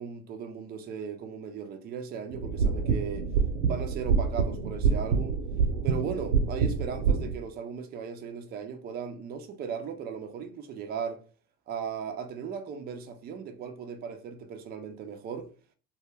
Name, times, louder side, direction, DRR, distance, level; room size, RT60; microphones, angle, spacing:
voice 1, 0.0-3.3 3.6-5.4 5.8-11.2 11.7-15.5, right 6 dB, 25° right, 0.4 m, -37 dB
sound 1, 2.3-7.3, right 5 dB, 70° right, 0.7 m, -27 dB
2.2 x 2.2 x 3.2 m
hypercardioid pair, 75°, 46 cm